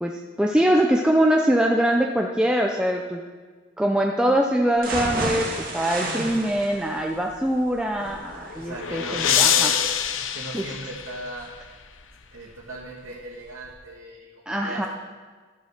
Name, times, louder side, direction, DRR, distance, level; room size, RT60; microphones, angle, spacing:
voice 1, 0.0-3.2 3.8-9.7 10.5-10.6 14.5-14.9, right 1 dB, 5° right, 1 dB, 0.5 m, -23 dB
sound 1, 4.8-12.7 13.1-13.2 13.6-13.7, right 2 dB, 50° right, 2.7 m, -34 dB
voice 2, 6.0-6.5 8.6-9.8 10.1-11.5 12.3-14.9, right 2 dB, 90° right, -6 dB, 1.8 m, -37 dB
sound 2, 8.2-11.6, left 9 dB, 85° left, 0.6 m, -25 dB
12.5 x 7.3 x 5.9 m, 1.5 s
head